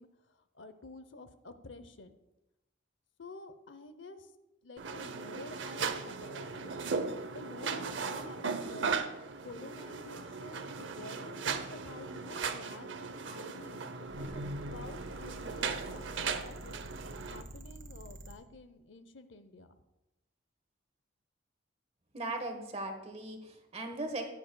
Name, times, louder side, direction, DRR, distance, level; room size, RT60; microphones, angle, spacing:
voice 1, 0.0-2.1 3.2-4.3 4.6-7.0 7.3-8.9 9.4-13.8 14.1-14.4 14.7-16.8 17.3-19.8, left 3 dB, 70° left, 10 dB, 0.7 m, -50 dB
sound 1, 4.8-17.4, right 5 dB, 65° right, 0.7 m, -37 dB
sound 2, 14.0-18.4, right 1 dB, 85° right, 1.7 m, -48 dB
voice 2, 22.1-24.3, right 2 dB, 35° right, 5 dB, 1.3 m, -38 dB
15.5 x 9.6 x 2.3 m, 0.95 s
head